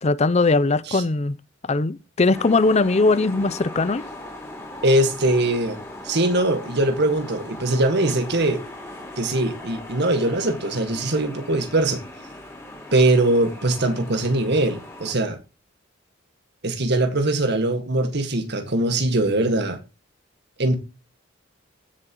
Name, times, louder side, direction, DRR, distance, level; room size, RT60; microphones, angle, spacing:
voice 1, 0.0-1.4 1.7-4.1, left 3 dB, 35° left, 0.6 m, -20 dB
sound 1, 2.3-15.1, left 1 dB, 15° left, 3.7 m, -39 dB
voice 2, 4.8-8.6 9.2-12.0 12.9-15.4 16.6-19.8 20.6-20.7, right 1 dB, 60° right, 1.8 m, -21 dB
16.0 x 7.5 x 3.0 m
head